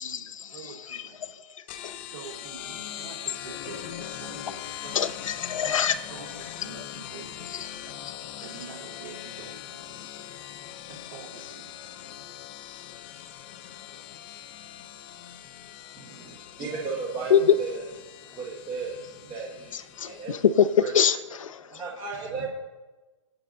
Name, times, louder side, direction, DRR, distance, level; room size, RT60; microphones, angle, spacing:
voice 1, 0.0-1.4 1.7-5.2 5.6-8.1 8.4-10.0 10.9-11.8 18.9-19.0 22.2-22.5, right 6 dB, 45° right, -1 dB, 3.9 m, -46 dB
sound 1, 1.7-20.8, left 11 dB, 20° left, 0.4 m, -41 dB
voice 2, 5.4-5.9 17.3-17.4 20.0-21.6, left 8 dB, 75° left, 11 dB, 0.7 m, -23 dB
voice 3, 16.0-16.3 16.6-17.9 18.3-20.4 20.8-20.9 21.7-22.5, right 4 dB, 15° right, -3 dB, 1.2 m, -35 dB
26.0 x 8.7 x 2.6 m, 1.2 s
hypercardioid pair, 170°, 17 cm